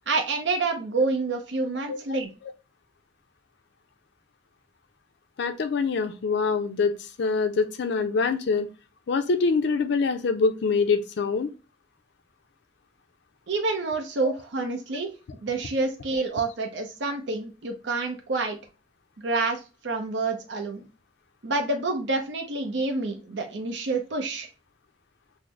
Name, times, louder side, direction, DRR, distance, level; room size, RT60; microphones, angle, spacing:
voice 1, 0.1-2.3 13.5-15.1 15.4-18.6 19.2-20.8 21.4-24.5, right 3 dB, 70° right, 4 dB, 0.6 m, -28 dB
voice 2, 5.4-8.7 9.1-11.5 14.2-14.3, left 4 dB, 65° left, 7 dB, 0.4 m, -25 dB
3.7 x 2.0 x 3.1 m, 0.31 s
head